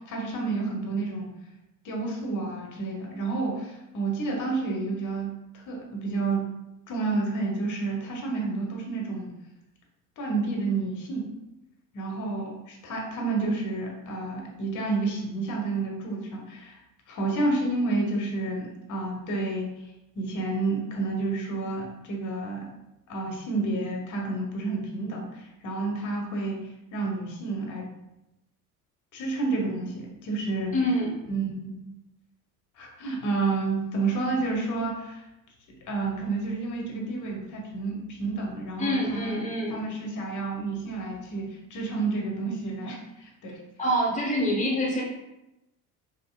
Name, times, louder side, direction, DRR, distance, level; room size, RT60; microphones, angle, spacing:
voice 1, 0.1-1.3 1.8-5.3 5.7-6.5 6.9-9.3 10.2-11.3 11.9-16.8 17.1-19.7 20.1-22.6 23.1-26.6 26.9-27.9 29.1-30.8 31.3-31.9 32.8-35.2 35.7-39.4 39.7-43.6, right 3 dB, 40° left, 0 dB, 1.1 m, -30 dB
voice 2, 30.7-31.2 38.8-39.8 43.8-45.0, equal, 15° left, -2 dB, 1.1 m, -26 dB
5.4 x 2.1 x 2.3 m, 0.92 s
figure-of-eight pair, 55°, 45 cm